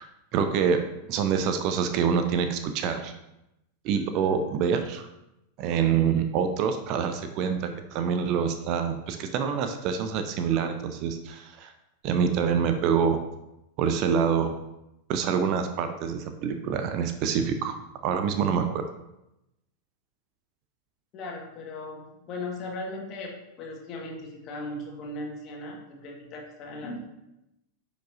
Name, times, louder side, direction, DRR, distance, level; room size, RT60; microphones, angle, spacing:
voice 1, 0.3-0.8 1.1-3.1 3.8-5.1 5.6-11.7 12.0-13.2 13.8-14.5 15.1-17.8 18.0-18.8, right 7 dB, 40° right, 8 dB, 0.6 m, -26 dB
voice 2, 21.1-23.3 23.6-27.0, left 2 dB, 35° left, -1 dB, 1.8 m, -37 dB
10.0 x 5.1 x 2.7 m, 0.89 s
figure-of-eight pair, 90°, 0 cm